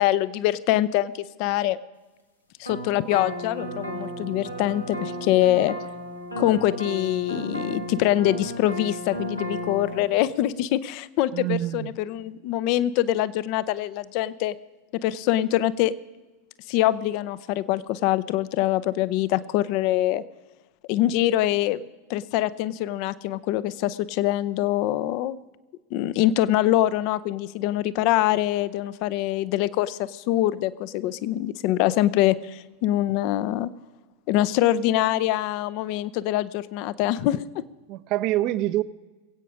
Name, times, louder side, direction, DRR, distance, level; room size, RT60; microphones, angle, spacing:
voice 1, 0.0-1.8 2.6-5.7 6.4-14.5 15.0-15.9 16.7-20.2 20.9-21.8 22.1-25.4 25.9-33.7 34.3-37.6, left 14 dB, 45° left, 18 dB, 0.5 m, -24 dB
sound 1, 2.7-10.0, equal, 85° left, 1.6 m, -34 dB
voice 2, 11.3-11.9 37.9-38.8, right 15 dB, 40° right, 16 dB, 0.6 m, -25 dB
22.0 x 8.6 x 5.0 m, 1.2 s
figure-of-eight pair, 90°, 0 cm